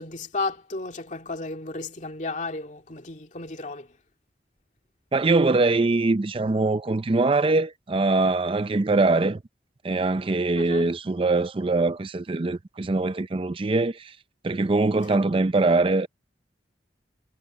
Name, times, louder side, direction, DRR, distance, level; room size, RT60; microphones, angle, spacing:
voice 1, 0.0-3.9 10.6-10.9 15.1-15.2, left 3 dB, 45° left, 2.4 m, -33 dB
voice 2, 5.1-9.4 9.8-14.1 14.4-16.1, right 3 dB, 30° right, 0.5 m, -22 dB
head